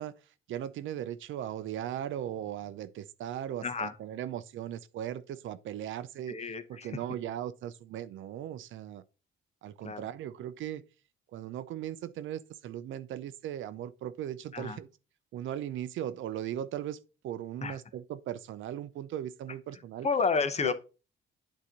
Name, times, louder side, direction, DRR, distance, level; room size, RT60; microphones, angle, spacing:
voice 1, 0.0-9.0 9.6-10.8 11.3-14.9 15.3-20.1 20.6-20.7, right 11 dB, 75° right, 0.6 m, -38 dB
voice 2, 3.6-3.9 6.3-6.9 9.8-10.1 14.5-14.8 17.6-17.8 20.0-20.7, left 5 dB, 35° left, 0.8 m, -30 dB
8.4 x 2.9 x 5.1 m
cardioid pair, 90°, 20 cm